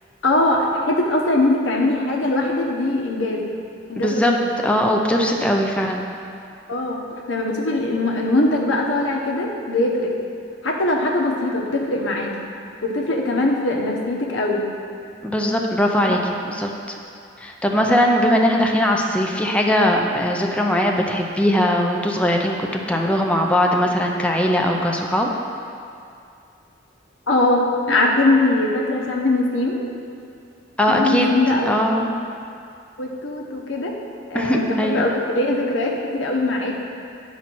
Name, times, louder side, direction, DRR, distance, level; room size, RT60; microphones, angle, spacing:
voice 1, 0.2-3.4 3.9-4.5 5.2-5.3 6.7-7.0 7.3-10.1 10.6-12.3 12.8-14.6 27.3-27.6 27.9-29.8 30.9-31.6 33.0-34.0 34.3-36.7, left 2 dB, 90° left, -1 dB, 1.1 m, -21 dB
voice 2, 4.0-4.3 4.6-6.0 15.2-16.2 16.6-17.0 17.4-25.3 30.8-32.1 34.3-35.0, equal, 5° left, 0 dB, 0.5 m, -20 dB
9.8 x 4.2 x 6.1 m, 2.4 s
head